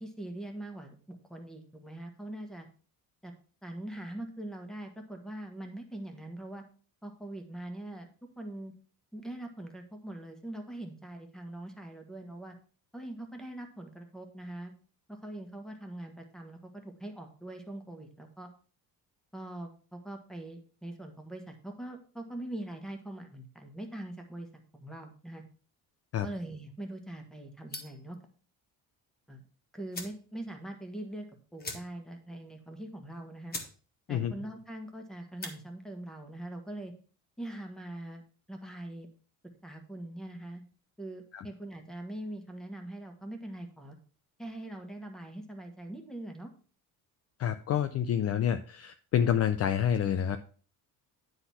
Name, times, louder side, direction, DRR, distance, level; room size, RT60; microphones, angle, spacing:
voice 1, 0.0-2.7 3.2-3.3 3.6-6.6 7.0-8.7 9.1-12.5 12.9-14.7 15.1-18.5 19.3-24.5 24.7-25.4 26.2-28.2 29.3-29.4 29.7-33.6 34.1-36.9 37.4-39.1 39.6-40.6 41.0-44.0 44.4-46.5, right 1 dB, ahead, 4 dB, 1.4 m, -42 dB
sound 1, 27.7-28.1 29.4-29.5 29.9-30.2 30.6-30.7 30.9-31.1 31.6-32.2 32.5-32.6 33.1-33.2 33.5-33.8 34.1-34.5 35.2-35.6, left 3 dB, 25° left, 1.6 m, -42 dB
voice 2, 47.4-50.4, left 9 dB, 40° left, 9 dB, 0.5 m, -28 dB
10.0 x 4.0 x 5.7 m, 0.40 s
cardioid pair, 150°, 37 cm